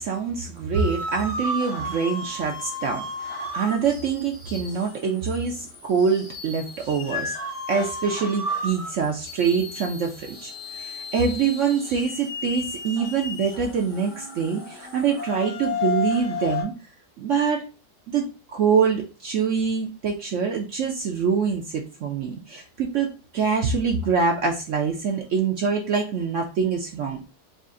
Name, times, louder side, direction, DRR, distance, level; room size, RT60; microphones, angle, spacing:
voice 1, 0.0-7.3 7.7-16.7 17.2-17.6 18.1-27.2, right 6 dB, 70° right, 1 dB, 0.7 m, -25 dB
sound 1, 0.7-16.6, left 2 dB, 50° left, 2.0 m, -33 dB
3.9 x 2.5 x 3.6 m, 0.33 s
omnidirectional pair, 1.9 m